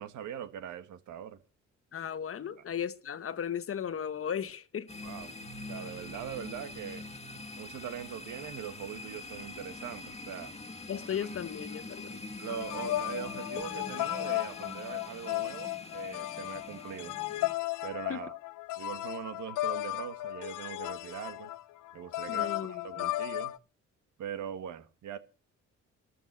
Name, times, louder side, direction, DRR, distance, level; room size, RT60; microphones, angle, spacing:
voice 1, 0.0-1.4 5.0-5.3 5.7-7.1 7.6-10.6 12.4-17.2 17.8-18.4 18.8-21.5 21.9-23.5 24.2-25.2, right 9 dB, 75° right, 1.8 m, -41 dB
voice 2, 1.9-4.9 10.9-12.2 18.1-18.2 22.3-23.1, left 8 dB, 45° left, 1.3 m, -36 dB
sound 1, 4.9-17.5, left 2 dB, 20° left, 2.0 m, -44 dB
sound 2, 12.5-23.6, left 16 dB, 85° left, 0.7 m, -35 dB
13.5 x 12.5 x 6.7 m
cardioid pair, 90°, 30 cm